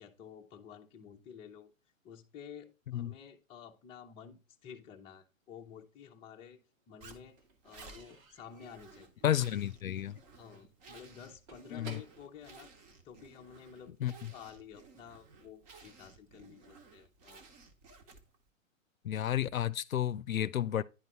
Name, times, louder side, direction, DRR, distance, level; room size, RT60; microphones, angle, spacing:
voice 1, 0.0-1.7 2.0-6.6 6.9-7.4 7.6-9.2 10.4-12.7 13.0-13.9 14.3-17.4, left 8 dB, 15° left, 0.6 m, -51 dB
Slam / Squeak / Wood, 5.6-6.5 6.7-13.5, right 3 dB, 80° right, 2.2 m, -56 dB
Zipper (clothing), 7.0-18.5, right 4 dB, 30° right, 1.2 m, -56 dB
voice 2, 9.2-10.2 11.7-12.0 14.0-14.1 19.0-20.8, left 11 dB, 85° left, 0.6 m, -31 dB
10.0 x 4.0 x 4.5 m
hypercardioid pair, 125°, 40 cm